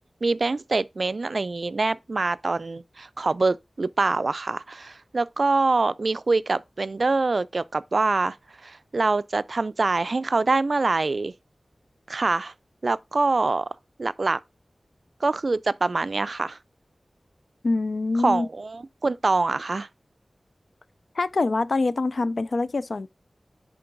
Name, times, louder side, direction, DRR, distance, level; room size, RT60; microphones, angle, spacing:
voice 1, 0.2-8.4 8.6-11.3 12.1-12.5 12.8-13.7 14.0-14.4 15.2-16.6 18.2-19.9, right 3 dB, 60° right, 0.3 m, -24 dB
voice 2, 17.6-18.5 21.2-23.1, left 3 dB, 70° left, 0.4 m, -25 dB
10.5 x 3.8 x 3.8 m
wide cardioid pair, 60°, 0 cm